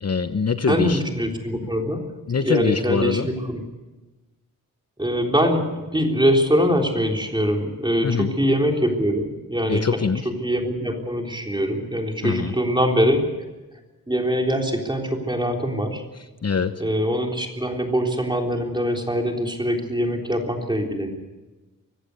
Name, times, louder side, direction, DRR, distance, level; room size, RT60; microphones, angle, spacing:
voice 1, 0.0-1.0 2.3-3.3 8.0-8.3 9.7-10.3 12.2-12.6 16.1-16.8, left 5 dB, 45° left, 9 dB, 1.0 m, -24 dB
voice 2, 0.7-2.1 2.4-3.6 5.0-9.8 10.3-13.3 14.1-16.0 16.8-21.1, equal, 15° right, 2 dB, 3.6 m, -23 dB
24.5 x 15.0 x 8.3 m, 1.1 s
wide cardioid pair, 105°, 34 cm